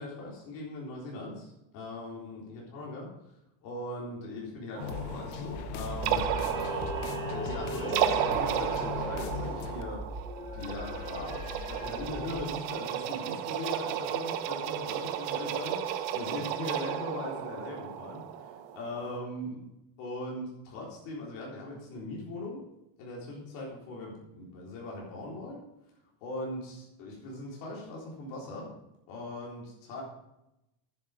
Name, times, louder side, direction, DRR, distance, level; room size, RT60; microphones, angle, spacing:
voice 1, 0.0-3.3 3.6-6.8 7.3-10.0 10.5-19.6 20.0-22.6 23.0-25.7 26.2-28.7 29.1-30.0, left 2 dB, 65° left, -4 dB, 3.8 m, -40 dB
sound 1, 4.8-9.8, left 7 dB, 85° left, 1.1 m, -39 dB
sound 2, 4.8-19.2, right 10 dB, 55° right, 1.0 m, -34 dB
sound 3, 5.4-12.4, equal, 25° left, 3.4 m, -39 dB
10.0 x 8.3 x 5.1 m, 0.88 s
cardioid pair, 170°, 45 cm